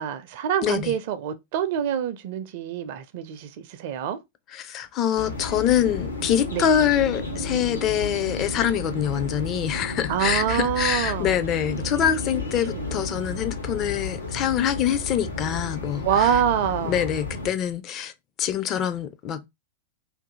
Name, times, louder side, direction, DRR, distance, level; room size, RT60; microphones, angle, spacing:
voice 1, 0.0-4.2 6.5-6.6 10.1-11.4 12.7-13.0 16.0-17.1, right 9 dB, 50° right, 0.5 m, -26 dB
voice 2, 0.6-1.0 4.5-16.4 16.8-18.1 18.4-19.5, left 9 dB, 35° left, 0.4 m, -25 dB
sound 1, 5.2-17.5, left 2 dB, 75° left, 0.8 m, -32 dB
2.6 x 2.6 x 3.7 m
figure-of-eight pair, 90°, 0 cm